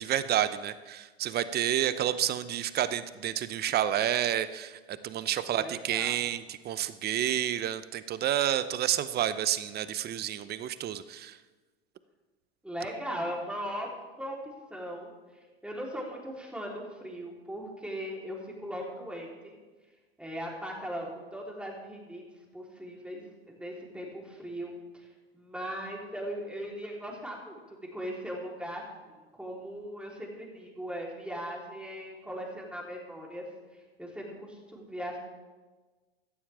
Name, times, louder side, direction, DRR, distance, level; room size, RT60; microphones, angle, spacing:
voice 1, 0.0-11.4, right 11 dB, 30° right, 14 dB, 0.8 m, -30 dB
voice 2, 5.5-6.3 12.6-13.9 14.2-14.4 14.7-15.1 15.6-19.6 20.2-22.2 22.5-25.1 25.3-27.6 27.9-33.5 34.0-35.2, equal, 5° right, -2 dB, 3.7 m, -39 dB
17.0 x 12.5 x 3.6 m, 1.3 s
hypercardioid pair, 95°, 32 cm